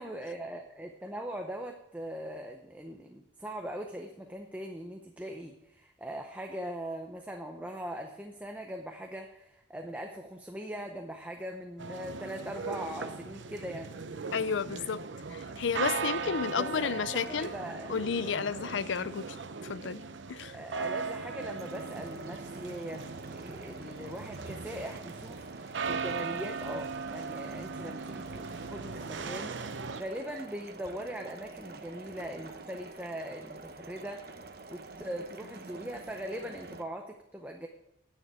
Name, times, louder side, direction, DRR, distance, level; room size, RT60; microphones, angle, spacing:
voice 1, 0.0-13.9 16.5-17.9 18.4-18.5 20.5-34.4 34.7-37.7, equal, 10° right, 0.7 m, -41 dB
sound 1, 11.8-30.0, right 5 dB, 85° right, 0.7 m, -38 dB
voice 2, 14.3-15.0 15.3-17.5 17.9-19.3 19.6-20.0 20.3-20.6, left 6 dB, 90° left, 0.5 m, -32 dB
sound 2, 21.5-36.8, right 3 dB, 55° right, 0.9 m, -47 dB
9.8 x 6.7 x 8.9 m
head